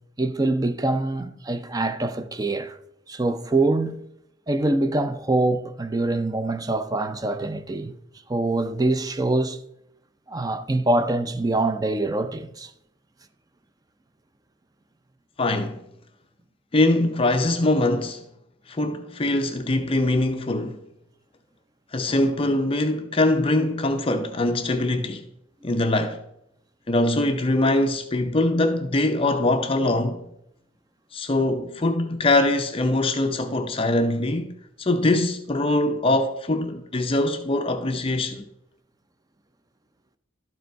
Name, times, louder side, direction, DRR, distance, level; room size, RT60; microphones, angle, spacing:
voice 1, 0.2-2.8 3.1-4.0 4.5-7.9 8.3-9.6 10.3-12.7, right 2 dB, 20° right, 0.5 m, -24 dB
voice 2, 15.4-15.8 16.7-18.2 18.7-20.8 21.9-25.2 25.6-26.2 26.9-30.2 31.1-38.5, left 2 dB, 30° left, 0.5 m, -23 dB
12.0 x 5.1 x 4.5 m
head